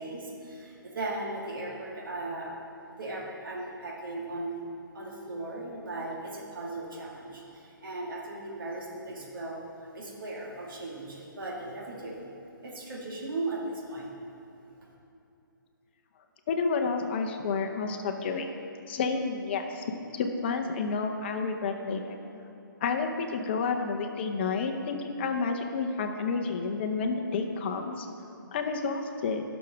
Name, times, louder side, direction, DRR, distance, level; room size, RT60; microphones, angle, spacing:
voice 1, 0.0-2.5 3.0-4.6 4.9-9.6 9.9-12.2 12.6-14.1, right 2 dB, 70° right, -4 dB, 2.1 m, -37 dB
voice 2, 16.5-18.5 18.9-19.8 20.1-22.2 22.8-28.1 28.5-29.4, left 4 dB, 30° left, 5 dB, 0.7 m, -30 dB
12.0 x 6.3 x 6.0 m, 2.9 s
hypercardioid pair, 160°, 12 cm